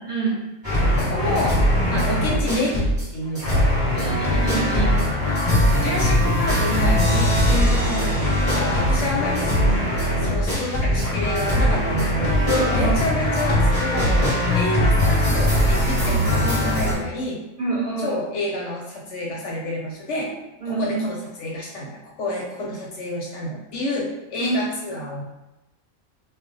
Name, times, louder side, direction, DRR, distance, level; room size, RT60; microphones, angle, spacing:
voice 1, 0.1-0.4 3.9-5.0 12.5-12.9 17.6-18.2 20.6-21.0 24.4-24.5, right 3 dB, 50° right, -7 dB, 0.6 m, -26 dB
sound 1, 0.6-3.1 3.3-16.9, equal, 20° right, 0.9 m, -20 dB
voice 2, 1.0-1.6 1.9-3.7 5.8-9.8 10.2-12.5 12.7-14.3 14.5-17.4 18.0-20.3 20.7-25.2, left 2 dB, 65° left, -2 dB, 0.8 m, -29 dB
2.4 x 2.0 x 3.8 m, 1.0 s
omnidirectional pair, 1.5 m